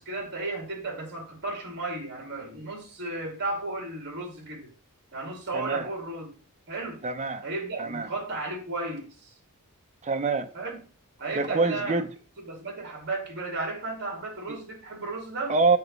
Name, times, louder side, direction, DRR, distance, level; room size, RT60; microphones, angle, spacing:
voice 1, 0.0-4.7 5.1-6.3 6.7-7.0 7.4-9.3 10.5-10.8 11.2-12.0 12.4-15.6, right 2 dB, 50° right, 2.4 m, -34 dB
voice 2, 5.5-5.9 7.0-7.4 7.8-8.1 10.0-10.5 11.3-12.1 15.5-15.8, right 3 dB, 30° right, 0.7 m, -25 dB
8.5 x 3.0 x 5.2 m
head